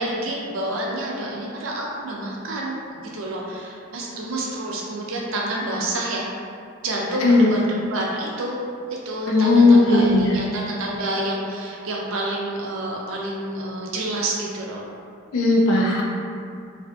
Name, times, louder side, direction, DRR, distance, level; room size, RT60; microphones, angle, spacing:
voice 1, 0.0-2.8 3.1-6.3 6.8-8.6 9.1-14.8, right 1 dB, 70° right, -2 dB, 0.4 m, -28 dB
voice 2, 7.2-7.5 9.3-10.4 15.3-16.0, left 2 dB, 75° left, -2 dB, 0.4 m, -16 dB
2.5 x 2.5 x 2.2 m, 2.3 s
head